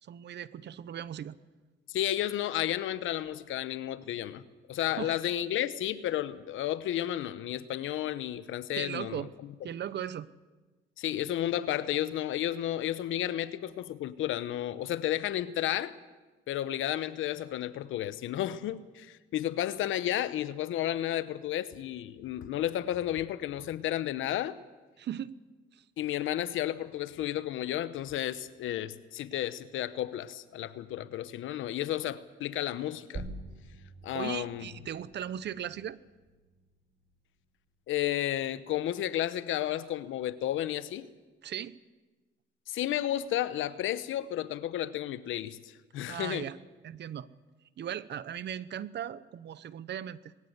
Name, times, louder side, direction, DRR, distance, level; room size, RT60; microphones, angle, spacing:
voice 1, 0.0-1.4 4.8-5.1 8.8-9.3 9.6-10.3 25.0-25.4 34.1-36.0 41.4-41.8 46.1-46.6 46.8-47.3 47.8-50.2, right 10 dB, 60° right, 17 dB, 0.9 m, -38 dB
voice 2, 1.9-4.4 4.7-9.2 11.0-15.9 16.5-24.6 26.0-33.3 34.0-34.7 37.9-41.1 42.7-46.5, left 12 dB, 80° left, 14 dB, 1.0 m, -32 dB
sound 1, 33.1-38.2, right 2 dB, 45° right, 2.8 m, -47 dB
20.5 x 17.5 x 8.1 m, 1.2 s
cardioid pair, 90°, 20 cm